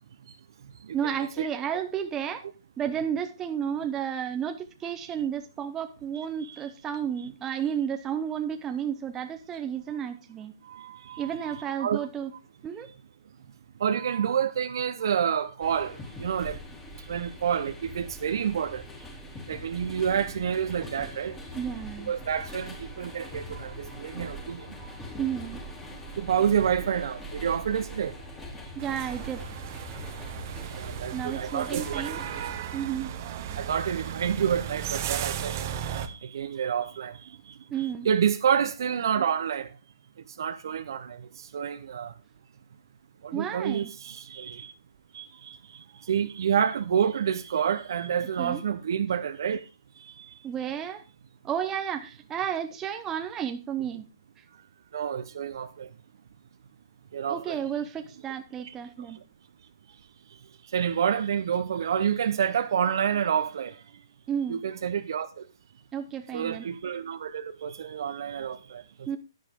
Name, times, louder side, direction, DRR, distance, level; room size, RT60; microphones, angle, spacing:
voice 1, 0.9-2.4 2.8-10.5 11.2-12.3 12.6-12.9 21.5-22.1 25.2-25.6 28.7-29.4 31.1-32.2 32.7-33.1 37.7-38.1 43.3-43.9 48.4-48.6 50.4-51.0 51.4-54.0 57.3-59.2 64.3-64.6 65.9-66.7 69.1-69.2, right 8 dB, 15° right, 0.7 m, -32 dB
voice 2, 6.1-6.6 10.7-12.1 13.8-16.6 17.1-18.8 19.5-21.4 22.1-24.9 26.2-28.1 30.7-32.2 33.6-35.6 36.1-37.3 37.8-39.7 40.4-42.1 43.2-44.7 45.1-45.6 46.1-49.6 50.0-50.4 54.9-55.9 57.1-57.6 58.6-58.7 60.7-63.8 64.5-65.4 66.3-68.8, right 8 dB, 65° right, 0.9 m, -28 dB
sound 1, 15.6-32.6, equal, 15° left, 3.4 m, -42 dB
sound 2, 28.8-36.1, right 9 dB, 45° right, 1.3 m, -35 dB
10.5 x 10.5 x 3.7 m
hypercardioid pair, 150°, 2 cm